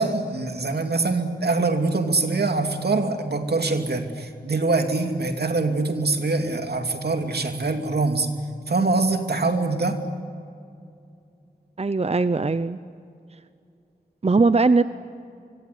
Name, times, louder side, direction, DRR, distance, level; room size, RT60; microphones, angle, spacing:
voice 1, 0.0-8.3 8.7-10.0, right 3 dB, 80° right, 5 dB, 2.7 m, -24 dB
voice 2, 11.8-12.8 14.2-14.8, right 3 dB, 40° right, 13 dB, 0.7 m, -20 dB
25.0 x 24.5 x 9.8 m, 2.5 s
wide cardioid pair, 50°, 17 cm